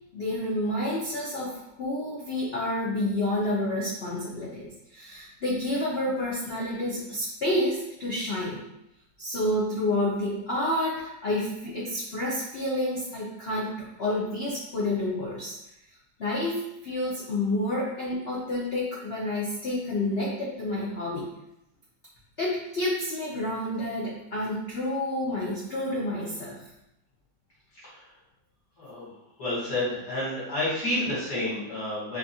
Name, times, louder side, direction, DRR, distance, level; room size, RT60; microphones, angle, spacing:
voice 1, 0.1-8.6 9.2-15.6 16.2-21.3 22.4-26.6, left 1 dB, 90° left, -5 dB, 0.5 m, -29 dB
voice 2, 27.7-28.1 28.8-29.1 29.4-32.2, left 1 dB, 60° left, -9 dB, 2.1 m, -30 dB
4.2 x 2.9 x 2.6 m, 0.85 s
omnidirectional pair, 2.0 m